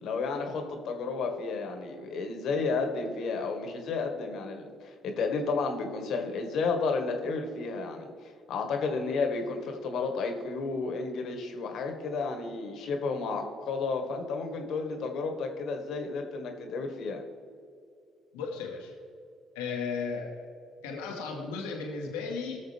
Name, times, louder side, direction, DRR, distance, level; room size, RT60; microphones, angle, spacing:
voice 1, 0.0-17.2, left 4 dB, 65° left, 4 dB, 1.7 m, -32 dB
voice 2, 18.3-18.9 19.5-20.5 20.8-22.6, left 5 dB, 85° left, 0 dB, 1.4 m, -35 dB
18.0 x 6.4 x 3.5 m, 2.4 s
hypercardioid pair, 55°, 0 cm